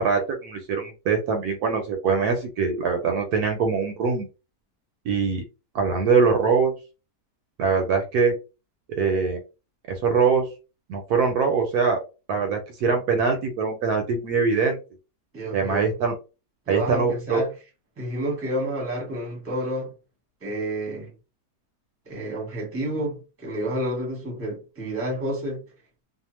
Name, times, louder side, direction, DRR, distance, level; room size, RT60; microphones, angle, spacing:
voice 1, 0.0-4.3 5.0-5.4 5.7-6.7 7.6-8.3 9.0-9.4 9.9-10.5 10.9-12.0 12.3-14.8 15.5-16.2 16.7-17.4, right 5 dB, 75° right, 1.0 m, -23 dB
voice 2, 15.3-15.9 16.7-17.5 18.0-19.9 20.4-21.1 22.1-25.6, right 1 dB, 10° right, 0.8 m, -29 dB
2.8 x 2.1 x 3.0 m
omnidirectional pair, 1.8 m